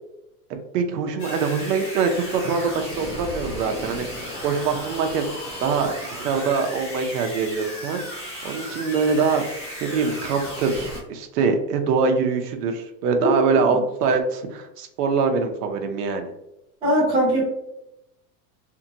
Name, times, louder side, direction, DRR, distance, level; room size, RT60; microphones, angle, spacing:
voice 1, 0.5-16.3, right 5 dB, 75° right, 5 dB, 0.7 m, -24 dB
sound 1, 1.2-11.0, left 1 dB, 30° left, 0.8 m, -35 dB
voice 2, 13.2-13.8 16.8-17.5, equal, 10° right, -7 dB, 0.6 m, -21 dB
2.7 x 2.6 x 2.6 m, 0.86 s
supercardioid pair, 165°, 47 cm